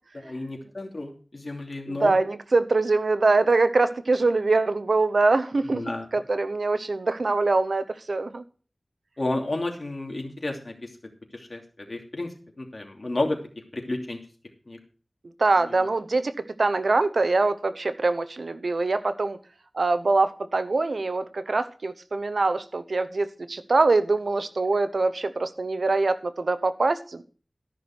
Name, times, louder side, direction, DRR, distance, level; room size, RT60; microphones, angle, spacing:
voice 1, 0.1-2.1 5.6-6.1 9.2-10.9 11.3-13.4 13.7-14.2 14.7-14.8, left 2 dB, 60° left, 2 dB, 2.9 m, -31 dB
voice 2, 1.9-8.4 15.4-19.4 19.7-27.2, right 3 dB, 85° right, 11 dB, 0.8 m, -24 dB
13.5 x 6.1 x 6.1 m, 0.40 s
wide cardioid pair, 40°, 0 cm